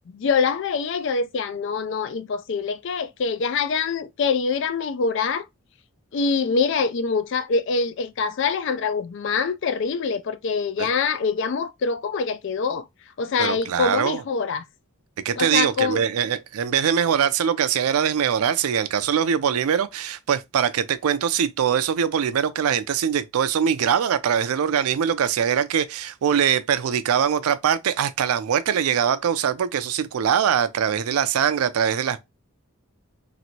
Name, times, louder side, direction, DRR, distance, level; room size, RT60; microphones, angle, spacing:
voice 1, 0.1-5.5 6.1-12.8 13.2-14.6 15.4-16.0, left 5 dB, 55° left, 0.3 m, -24 dB
voice 2, 13.4-14.2 15.2-32.2, right 8 dB, 85° right, 0.4 m, -22 dB
3.0 x 2.5 x 2.7 m
head